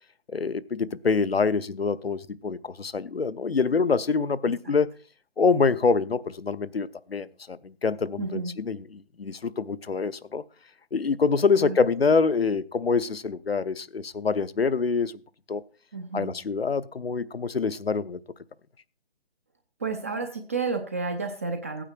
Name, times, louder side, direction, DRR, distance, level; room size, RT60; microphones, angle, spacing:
voice 1, 0.3-4.9 5.4-10.4 10.9-15.1 15.5-15.6 16.1-18.2, left 4 dB, 70° left, 0.9 m, -25 dB
voice 2, 8.2-8.5 11.6-11.8 15.9-16.3 19.8-21.8, right 4 dB, 15° right, 0.6 m, -31 dB
16.0 x 9.0 x 4.4 m
figure-of-eight pair, 145°, 31 cm